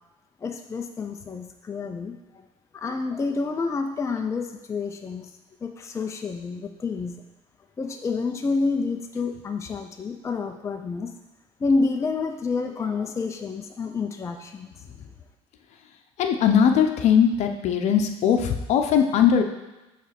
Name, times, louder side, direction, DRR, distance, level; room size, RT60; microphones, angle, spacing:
voice 1, 0.4-2.2 2.7-5.3 5.6-7.2 7.8-11.1 11.6-14.8, left 4 dB, 20° left, 4 dB, 0.5 m, -28 dB
voice 2, 16.2-19.4, left 8 dB, 60° left, 5 dB, 0.8 m, -20 dB
7.4 x 3.3 x 6.0 m, 1.0 s
cardioid pair, 115°, 13 cm